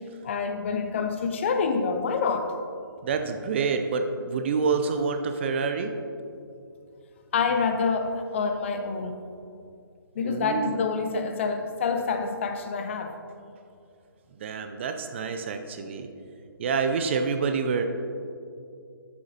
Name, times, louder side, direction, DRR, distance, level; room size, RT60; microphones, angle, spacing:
voice 1, 0.2-2.5 7.3-9.2 10.2-13.2, left 5 dB, 30° left, 7 dB, 0.6 m, -27 dB
voice 2, 3.0-5.9 10.2-10.8 14.4-16.1 16.6-17.8, right 5 dB, 30° right, 7 dB, 0.5 m, -27 dB
11.0 x 8.5 x 2.9 m, 2.5 s
figure-of-eight pair, 145°, 12 cm